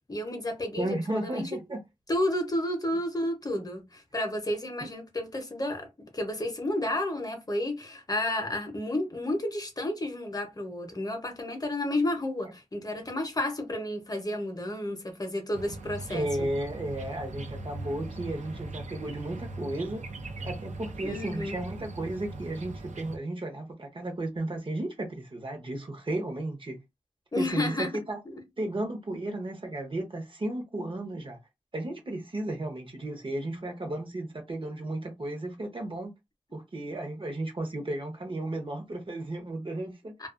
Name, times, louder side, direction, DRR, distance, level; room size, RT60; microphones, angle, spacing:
voice 1, 0.1-1.5 2.1-16.5 21.0-21.6 27.3-28.0 28.3-28.4 40.2-40.3, left 1 dB, 30° left, 0.7 m, -31 dB
voice 2, 0.8-1.8 16.1-20.0 20.4-26.8 27.4-28.2 28.6-31.4 31.7-36.1 36.5-40.1, right 1 dB, 45° right, 0.7 m, -34 dB
sound 1, 15.5-23.2, right 2 dB, 75° right, 0.5 m, -40 dB
2.3 x 2.3 x 2.4 m
wide cardioid pair, 85°, 13 cm